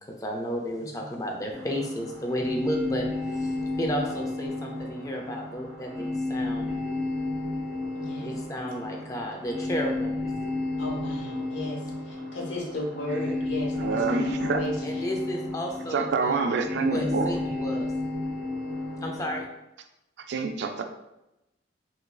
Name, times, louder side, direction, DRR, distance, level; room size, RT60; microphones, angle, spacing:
voice 1, 0.1-6.7 8.2-10.2 14.8-16.4 16.8-17.9 19.0-19.5, equal, 20° left, 1 dB, 0.4 m, -32 dB
sound 1, 1.5-19.4, left 2 dB, 10° right, 0.8 m, -32 dB
voice 2, 7.9-8.3 10.8-11.8 12.1-14.8 17.0-17.3, left 1 dB, 90° left, -2 dB, 0.7 m, -34 dB
voice 3, 13.8-14.6 15.9-17.3 20.3-20.8, right 4 dB, 65° right, 6 dB, 0.3 m, -27 dB
3.0 x 2.5 x 2.2 m, 0.91 s
head